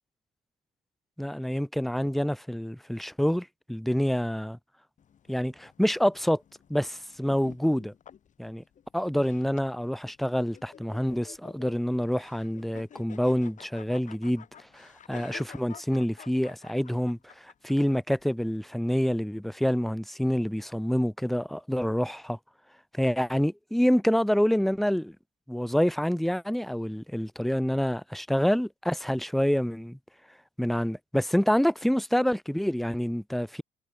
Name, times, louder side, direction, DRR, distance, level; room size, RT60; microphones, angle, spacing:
voice 1, 1.2-4.6 5.3-6.4 6.7-7.9 8.4-8.6 8.9-14.4 14.7-22.4 23.0-25.2 25.5-30.0 30.6-33.6, equal, ahead, 1.2 m, -27 dB
sound 1, 5.0-18.6, left 8 dB, 45° left, 6.4 m, -51 dB
cardioid pair, 110°, 17 cm